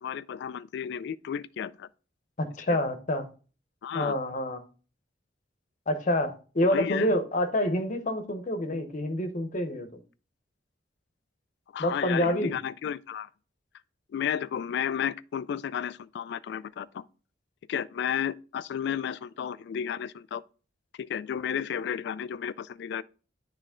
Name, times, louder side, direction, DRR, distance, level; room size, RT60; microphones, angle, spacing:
voice 1, 0.0-1.9 2.7-2.8 3.8-4.2 6.7-7.1 11.7-13.3 14.1-17.0 17.7-20.4 21.0-23.0, left 8 dB, 65° left, 0.3 m, -32 dB
voice 2, 2.4-3.2 3.9-4.6 5.9-10.0 11.8-12.5, left 1 dB, 45° left, 0.9 m, -27 dB
9.7 x 3.2 x 3.6 m
head